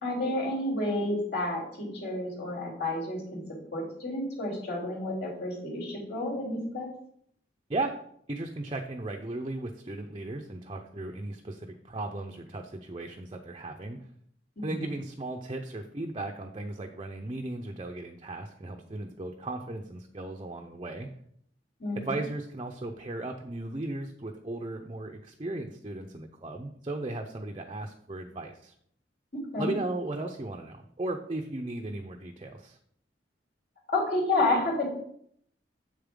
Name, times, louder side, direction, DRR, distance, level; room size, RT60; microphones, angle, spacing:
voice 1, 0.0-3.4 3.7-6.9 14.6-14.9 21.8-22.1 29.3-29.7 33.9-34.9, left 2 dB, 60° left, -4 dB, 3.3 m, -30 dB
voice 2, 8.3-14.0 14.6-21.1 22.0-28.7 29.6-32.8, right 2 dB, 30° right, 3 dB, 0.6 m, -36 dB
7.7 x 6.9 x 3.7 m, 0.66 s
head